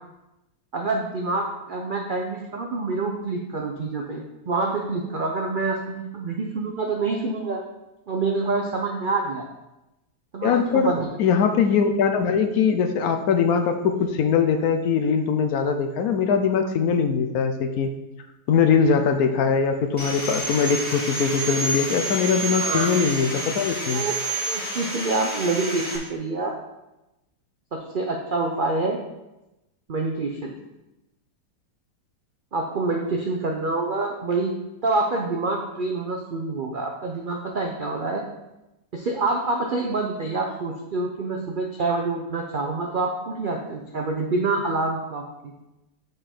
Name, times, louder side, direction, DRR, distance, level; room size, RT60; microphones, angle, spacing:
voice 1, 0.7-7.6 8.1-9.5 10.3-11.1 22.6-22.9 23.9-24.2 24.5-26.5 27.7-29.0 29.9-30.5 32.5-34.5 34.8-38.2 38.9-45.5, right 3 dB, 80° right, 1 dB, 0.4 m, -26 dB
voice 2, 10.4-17.9 18.5-24.0, left 6 dB, 70° left, 7 dB, 1.0 m, -21 dB
Sawing, 20.0-26.0, right 2 dB, 5° left, 1.7 m, -29 dB
6.7 x 4.8 x 4.4 m, 0.96 s
omnidirectional pair, 1.8 m